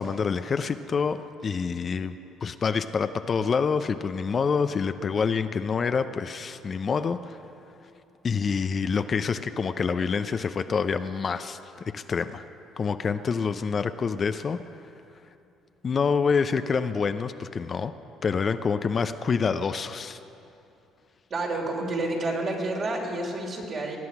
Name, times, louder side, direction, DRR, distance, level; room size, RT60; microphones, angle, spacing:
voice 1, 0.0-2.2 2.4-7.4 8.2-11.6 11.9-12.4 12.8-14.6 15.8-17.9 18.2-20.2, left 5 dB, 40° left, 10 dB, 0.6 m, -27 dB
voice 2, 21.3-24.0, right 2 dB, 45° right, 0 dB, 3.3 m, -29 dB
20.0 x 9.5 x 6.0 m, 2.7 s
hypercardioid pair, 65°, 0 cm